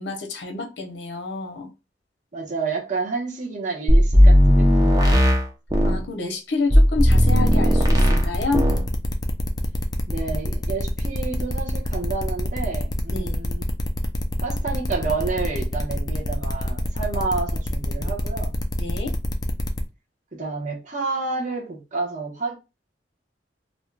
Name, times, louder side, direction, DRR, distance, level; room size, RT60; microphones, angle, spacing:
voice 1, 0.0-1.7 5.8-8.7 13.1-13.4 18.8-19.1, left 3 dB, 80° left, 0.7 m, -28 dB
voice 2, 2.3-5.3 10.1-13.7 14.4-18.5 20.3-22.6, right 4 dB, 45° right, 0.9 m, -30 dB
sound 1, 3.9-6.0 6.7-8.3 8.5-8.9, equal, 20° right, 0.6 m, -16 dB
sound 2, 7.0-19.8, left 1 dB, 20° left, 0.4 m, -28 dB
2.7 x 2.2 x 3.2 m
head